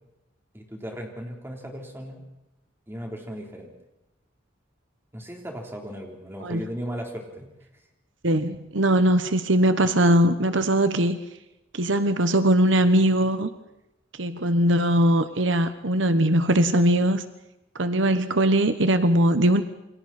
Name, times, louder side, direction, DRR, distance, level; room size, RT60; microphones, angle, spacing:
voice 1, 0.5-2.2 2.9-3.7 5.1-7.5, equal, 10° right, 1 dB, 3.8 m, -36 dB
voice 2, 8.2-11.2 11.7-13.5 14.2-17.2 17.8-19.6, right 1 dB, 75° right, 10 dB, 1.2 m, -20 dB
28.5 x 24.0 x 4.4 m, 0.91 s
head